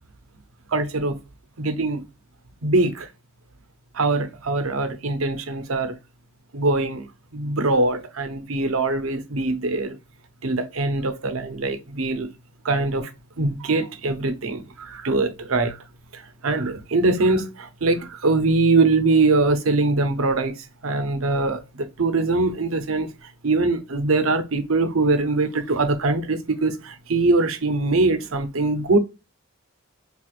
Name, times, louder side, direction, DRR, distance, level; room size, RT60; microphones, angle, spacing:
voice 1, 0.7-1.2 1.6-2.0 2.6-3.1 3.9-5.9 6.5-10.0 10.4-12.3 12.6-13.1 13.4-15.8 16.1-29.0, right 3 dB, 80° right, 0.7 m, -22 dB
4.3 x 2.3 x 2.5 m
head